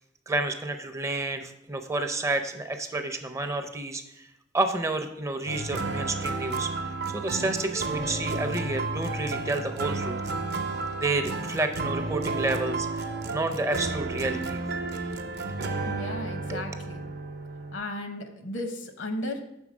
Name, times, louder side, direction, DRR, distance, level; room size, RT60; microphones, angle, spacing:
voice 1, 0.3-4.3 4.5-6.7 7.1-10.2 11.0-14.7 16.5-16.7, right 2 dB, 15° right, 7 dB, 0.4 m, -30 dB
sound 1, 5.5-17.8, right 3 dB, 60° right, 0.6 m, -32 dB
voice 2, 15.8-17.1 17.7-19.4, left 1 dB, 70° left, 6 dB, 0.8 m, -35 dB
6.2 x 3.8 x 5.9 m, 0.83 s
head